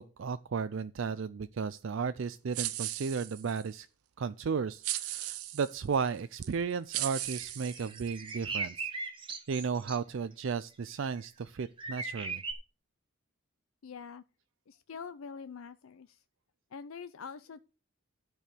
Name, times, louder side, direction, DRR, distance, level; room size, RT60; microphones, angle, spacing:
voice 1, 0.0-3.9 4.2-8.9 9.5-12.4, right 5 dB, 60° right, 0.4 m, -34 dB
sound 1, 2.5-3.7 4.8-5.8 6.4-6.5 6.9-8.3, right 15 dB, 90° right, 0.7 m, -37 dB
sound 2, 7.1-10.0 11.0-11.2 11.8-12.5, right 3 dB, 25° right, 1.5 m, -39 dB
voice 2, 13.8-14.2 14.7-16.2 16.7-17.6, left 5 dB, 70° left, 0.5 m, -45 dB
12.0 x 4.7 x 6.7 m
head